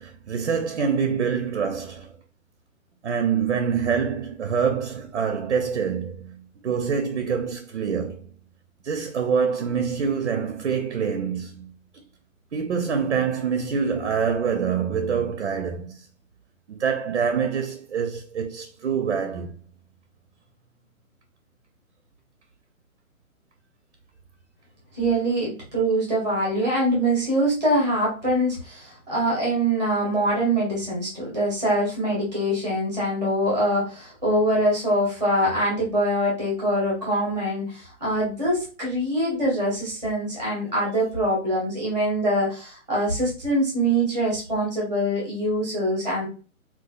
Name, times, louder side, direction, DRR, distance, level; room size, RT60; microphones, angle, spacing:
voice 1, 0.0-2.1 3.0-8.3 8.8-11.7 12.5-16.1 16.7-19.6, right 6 dB, 55° right, 0.5 m, -26 dB
voice 2, 24.9-46.3, right 1 dB, 5° right, 0.6 m, -24 dB
3.9 x 2.3 x 2.2 m
hypercardioid pair, 170°, 42 cm